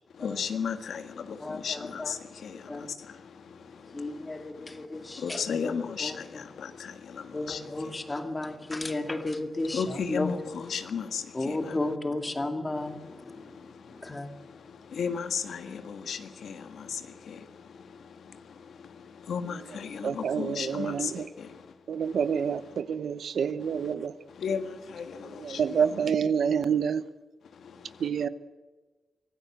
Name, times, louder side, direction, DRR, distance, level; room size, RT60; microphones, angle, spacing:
voice 1, 0.2-7.9 9.7-11.8 13.0-22.2 23.7-23.9 24.3-25.8 27.4-28.1, left 6 dB, 90° left, 1.7 m, -36 dB
voice 2, 1.4-2.2 2.7-2.9 3.6-5.7 6.0-6.4 7.3-10.3 11.3-14.3, left 2 dB, 20° left, 2.3 m, -34 dB
voice 3, 20.0-21.3 21.9-24.1 25.2-27.0 28.0-28.3, right 7 dB, 80° right, 1.0 m, -28 dB
25.0 x 17.0 x 7.9 m
wide cardioid pair, 140°, 0 cm